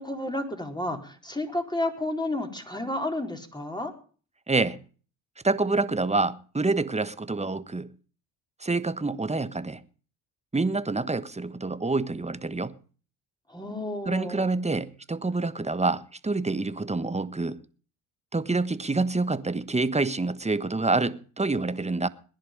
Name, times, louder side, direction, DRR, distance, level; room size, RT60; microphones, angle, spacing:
voice 1, 0.0-3.9 13.5-14.6, left 1 dB, 10° left, 4.3 m, -31 dB
voice 2, 4.5-4.8 5.4-7.9 8.6-9.8 10.5-12.8 14.0-17.6 18.3-22.1, right 3 dB, 15° right, 1.3 m, -27 dB
20.5 x 10.5 x 5.3 m
supercardioid pair, 60°, 44 cm